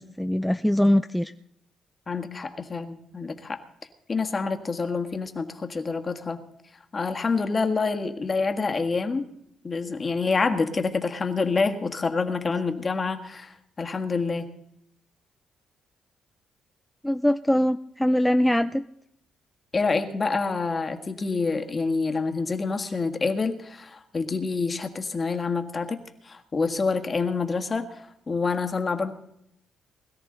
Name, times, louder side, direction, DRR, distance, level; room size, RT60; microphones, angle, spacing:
voice 1, 0.0-1.3 17.0-18.8, left 1 dB, 5° left, 8 dB, 0.5 m, -22 dB
voice 2, 2.1-3.6 4.1-6.4 6.9-9.3 9.6-14.5 19.7-29.1, left 4 dB, 35° left, 6 dB, 1.6 m, -27 dB
21.0 x 13.5 x 4.0 m, 0.75 s
cardioid pair, 90°, 0 cm